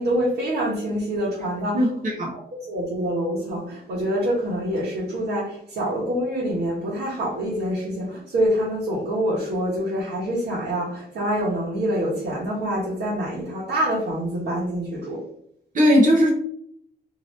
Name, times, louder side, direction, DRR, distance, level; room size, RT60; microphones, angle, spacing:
voice 1, 0.0-1.9 2.3-2.4 2.7-15.2, equal, 70° right, -8 dB, 1.2 m, -26 dB
voice 2, 1.7-2.3 15.7-16.3, equal, 50° right, -1 dB, 0.8 m, -18 dB
2.8 x 2.7 x 3.1 m, 0.68 s
wide cardioid pair, 160°, 18 cm